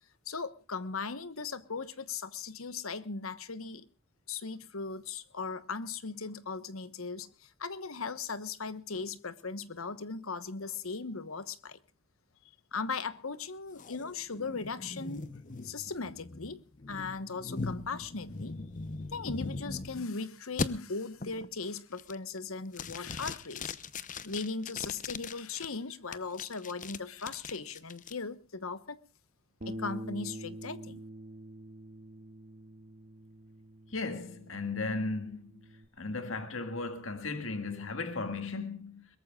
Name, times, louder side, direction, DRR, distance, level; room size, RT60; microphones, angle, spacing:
voice 1, 0.3-3.9 4.3-11.8 12.7-15.2 15.6-16.6 16.9-18.6 19.1-23.7 24.2-29.0 29.7-31.0, left 4 dB, 90° left, 1.2 m, -38 dB
sound 1, 13.8-20.1 20.6-20.7 21.2-21.5 21.9-22.4 22.7-25.7 26.1-28.1, left 3 dB, 40° left, 0.8 m, -40 dB
Bass guitar, 29.6-35.9, right 1 dB, 45° right, 1.9 m, -46 dB
voice 2, 33.9-35.5 36.0-39.1, left 3 dB, 70° left, 2.0 m, -36 dB
23.0 x 21.5 x 2.4 m
head